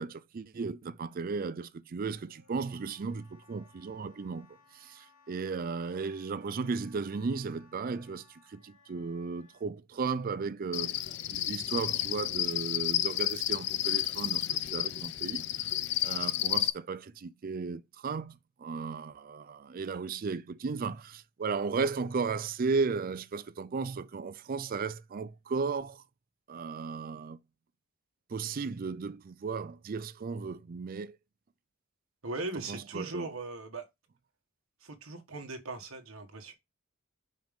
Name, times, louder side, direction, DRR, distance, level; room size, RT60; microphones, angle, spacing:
voice 1, 0.0-11.0 11.3-15.8 16.0-26.0 26.5-27.4 28.3-31.2 32.7-33.3, right 4 dB, 40° right, 0.4 m, -35 dB
Wind instrument woodwind instrument, 2.1-9.7, left 5 dB, 85° left, 1.6 m, -63 dB
Cricket, 10.7-16.7, left 13 dB, 50° left, 0.4 m, -31 dB
voice 2, 32.2-33.9 34.8-36.5, right 2 dB, 70° right, 1.5 m, -39 dB
5.5 x 5.2 x 3.6 m
head